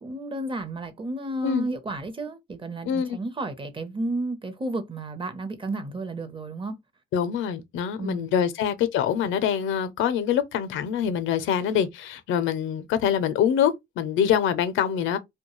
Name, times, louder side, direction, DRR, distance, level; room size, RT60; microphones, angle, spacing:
voice 1, 0.0-6.8 8.0-8.3, right 2 dB, 25° right, 0.6 m, -32 dB
voice 2, 2.9-3.2 7.1-15.2, left 8 dB, 80° left, 0.5 m, -25 dB
2.2 x 2.2 x 3.0 m
cardioid pair, 90°, 20 cm